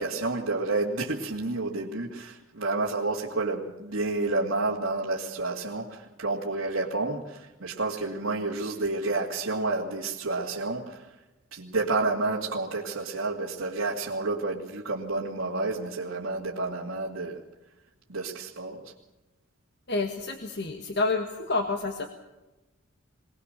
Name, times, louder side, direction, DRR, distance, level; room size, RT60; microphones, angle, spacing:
voice 1, 0.0-11.1 11.5-17.4 18.1-18.9, right 3 dB, 70° right, -5 dB, 2.4 m, -30 dB
voice 2, 19.9-22.1, left 3 dB, 55° left, 5 dB, 1.6 m, -29 dB
24.0 x 18.5 x 6.7 m, 1.1 s
head